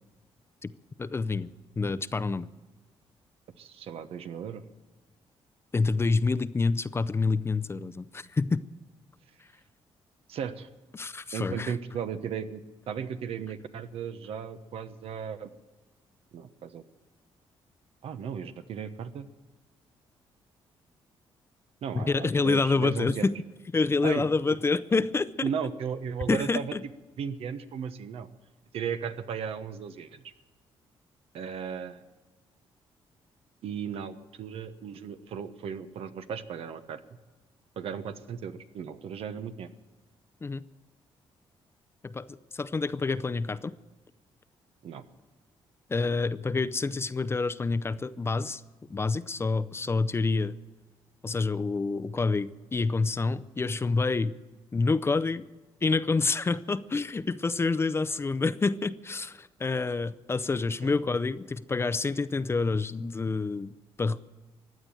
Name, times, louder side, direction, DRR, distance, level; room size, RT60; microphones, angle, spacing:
voice 1, 1.0-1.5 1.8-2.5 5.7-8.6 10.9-11.7 22.0-23.4 23.7-25.3 26.3-26.8 40.4-40.6 42.0-43.7 45.9-48.6 48.9-50.6 51.2-54.4 54.7-55.4 55.8-63.7 64.0-64.2, left 3 dB, 25° left, 13 dB, 0.5 m, -27 dB
voice 2, 3.6-4.6 10.3-10.7 11.3-15.5 16.3-16.8 18.0-19.3 21.8-23.3 24.0-24.6 25.4-26.7 27.2-28.3 28.7-30.2 31.3-32.0 33.6-37.0 37.8-39.7 44.8-45.0 60.8-61.0, right 7 dB, 75° right, 10 dB, 1.1 m, -36 dB
15.5 x 9.8 x 9.0 m, 1.3 s
cardioid pair, 100°, 10 cm